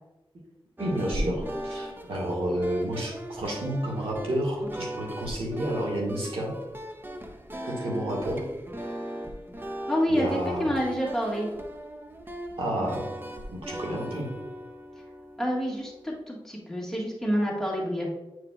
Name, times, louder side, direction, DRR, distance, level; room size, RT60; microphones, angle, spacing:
sound 1, 0.8-16.2, right 1 dB, 20° right, 0.6 m, -38 dB
voice 1, 0.8-6.5 7.6-8.4 10.1-10.7 12.6-13.1 13.5-14.3, right 1 dB, 85° right, -3 dB, 1.7 m, -30 dB
voice 2, 9.9-11.5 15.4-18.1, equal, 5° left, -4 dB, 1.6 m, -28 dB
8.5 x 4.8 x 2.3 m, 1.0 s
wide cardioid pair, 70°, 9 cm